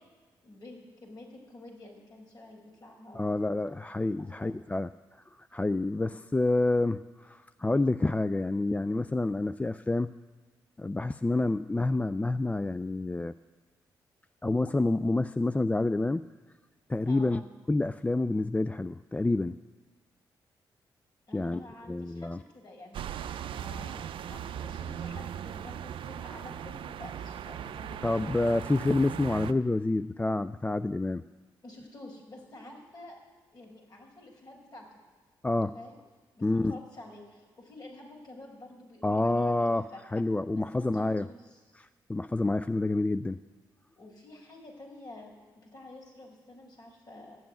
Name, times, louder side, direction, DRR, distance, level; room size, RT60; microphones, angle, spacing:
voice 1, 0.4-3.8 4.4-4.6 17.1-17.4 21.3-28.5 31.6-33.2 33.5-34.9 35.7-36.0 36.3-40.0 40.5-41.6 44.0-47.4, left 1 dB, 45° left, 0 dB, 5.0 m, -49 dB
voice 2, 3.1-10.1 10.8-13.3 14.4-16.3 16.9-17.4 17.7-19.6 21.3-22.4 28.0-31.2 35.4-35.7 36.4-36.8 39.0-41.3 41.7-43.4, left 2 dB, 15° left, 14 dB, 0.3 m, -28 dB
sound 1, 22.9-29.5, right 9 dB, 75° right, 0.5 m, -38 dB
12.5 x 8.9 x 9.2 m, 1.4 s
supercardioid pair, 55°, 9 cm